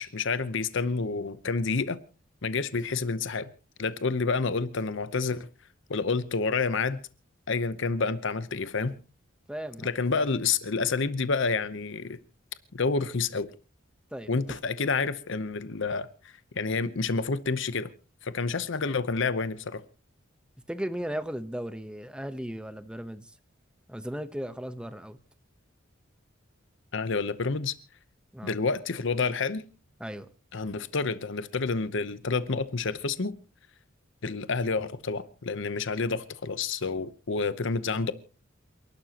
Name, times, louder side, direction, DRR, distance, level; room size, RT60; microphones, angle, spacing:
voice 1, 0.0-2.0 2.4-3.5 3.8-5.5 5.9-7.0 7.5-9.0 9.8-12.2 12.7-13.5 14.3-16.1 16.6-17.9 18.2-19.8 26.9-27.7 28.4-29.7 30.5-33.4 34.2-38.1, left 4 dB, 65° left, 0.8 m, -29 dB
voice 2, 9.5-9.9 14.1-14.6 20.7-23.3 23.9-25.2 28.3-28.6 30.0-30.3, equal, 5° right, 0.9 m, -36 dB
28.5 x 12.0 x 2.9 m
head